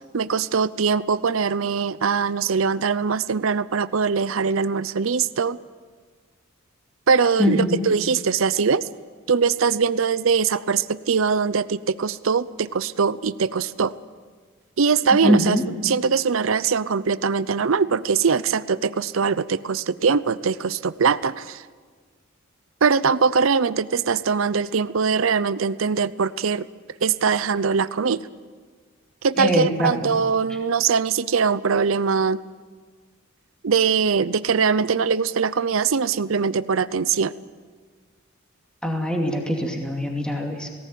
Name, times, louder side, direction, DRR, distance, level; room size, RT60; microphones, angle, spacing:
voice 1, 0.1-5.6 7.1-8.9 9.3-13.9 14.8-15.6 15.8-21.7 22.8-26.7 27.0-28.2 29.2-32.4 33.6-37.3, right 5 dB, 70° right, 17 dB, 0.6 m, -22 dB
voice 2, 7.4-7.9 15.2-15.6 29.4-29.9 38.8-40.7, left 1 dB, 5° left, 1 dB, 2.5 m, -22 dB
18.5 x 18.0 x 9.3 m, 1.5 s
head